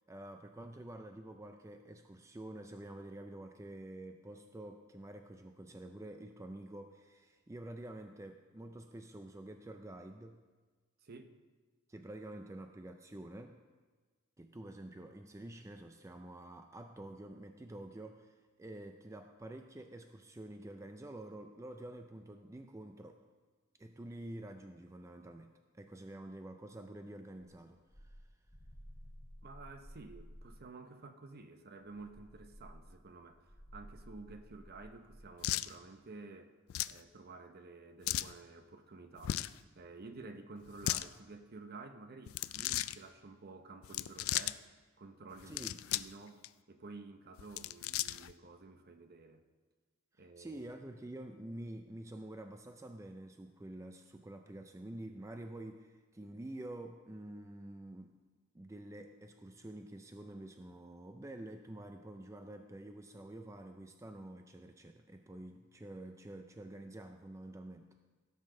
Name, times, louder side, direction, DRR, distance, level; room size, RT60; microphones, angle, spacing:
voice 1, 0.1-10.4 11.9-13.6 14.4-23.1 23.8-28.2 45.5-45.8 50.4-58.2 58.5-67.9, right 1 dB, 15° right, 6 dB, 0.4 m, -48 dB
voice 2, 11.0-11.3 29.4-36.5 36.9-39.4 39.7-44.6 45.0-46.4 46.7-49.4 50.2-50.6, right 3 dB, 50° right, 7 dB, 0.8 m, -52 dB
sound 1, 27.4-30.6 31.8-35.3, equal, 10° left, 1.5 m, -55 dB
sound 2, 35.4-35.7 36.7-37.0 38.0-38.3 39.2-39.6 40.7-41.1 42.3-43.0 43.8-44.5 45.4-46.1 46.4-46.5 47.4-48.3, left 14 dB, 70° left, 0.3 m, -36 dB
16.5 x 7.7 x 3.8 m, 1.4 s
head